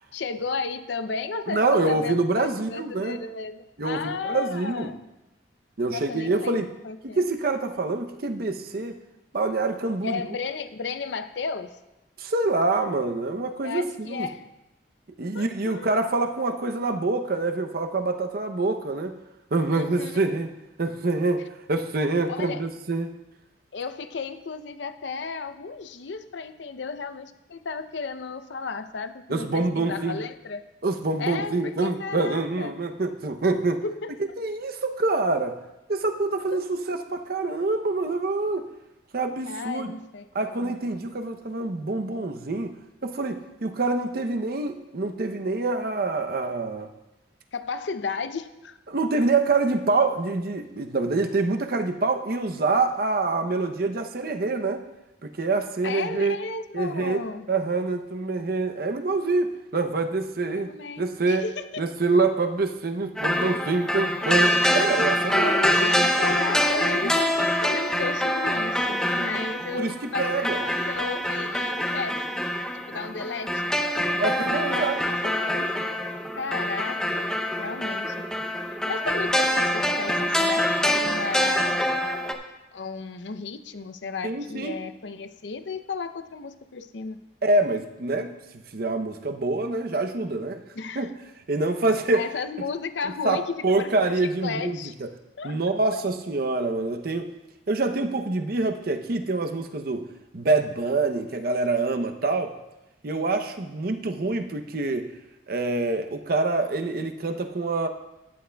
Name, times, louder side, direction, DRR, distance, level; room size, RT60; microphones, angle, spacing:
voice 1, 0.1-5.0 5.9-7.2 10.0-11.8 13.6-14.4 15.3-16.0 19.7-20.2 22.3-22.7 23.7-30.6 31.2-32.7 33.8-34.2 39.5-40.7 47.5-48.8 55.8-57.5 60.5-61.8 65.4-72.4 72.9-73.7 74.3-75.9 76.4-78.2 78.9-81.8 82.7-87.2 90.7-91.1 92.1-94.9 95.4-95.6 95.9-96.0, left 4 dB, 75° left, 10 dB, 0.6 m, -34 dB
voice 2, 1.5-3.2 3.8-4.9 5.8-6.7 7.0-9.0 9.3-10.2 12.2-14.3 15.2-19.2 19.5-20.5 20.8-23.1 29.3-30.2 30.8-33.8 34.2-35.6 35.9-38.7 39.1-39.9 40.3-42.7 43.0-46.9 48.9-54.8 55.2-56.4 56.7-60.7 61.0-61.5 61.8-65.6 67.0-67.1 69.7-69.9 70.2-70.6 74.2-75.0 84.2-84.8 87.4-88.3 88.7-90.6 91.0-91.1 91.5-92.2 93.2-95.1 95.4-97.3 97.7-100.1 100.3-102.5 103.0-105.1 105.5-107.9, right 3 dB, 55° right, 7 dB, 0.7 m, -26 dB
sound 1, 63.2-82.3, equal, 5° left, 0.6 m, -25 dB
14.0 x 10.0 x 2.3 m, 0.96 s
head